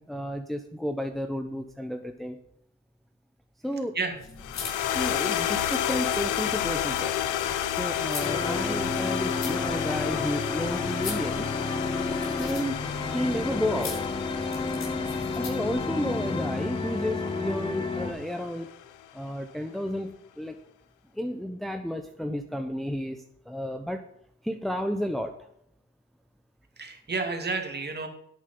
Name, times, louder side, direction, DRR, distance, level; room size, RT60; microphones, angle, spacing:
voice 1, 0.0-2.4 3.6-4.0 4.6-7.2 7.8-11.5 12.2-14.1 15.4-18.7 19.1-20.6 21.1-24.0 24.4-25.4, equal, ahead, 5 dB, 0.9 m, -32 dB
sound 1, 4.1-15.8, left 4 dB, 60° left, 4.4 m, -43 dB
sound 2, 4.4-18.8, left 11 dB, 80° left, 0.8 m, -31 dB
sound 3, 8.2-18.1, left 3 dB, 15° left, 1.5 m, -31 dB
voice 2, 15.0-15.3 26.8-28.1, right 4 dB, 35° right, 4 dB, 2.5 m, -31 dB
11.0 x 8.5 x 5.6 m, 0.74 s
cardioid pair, 90°, 30 cm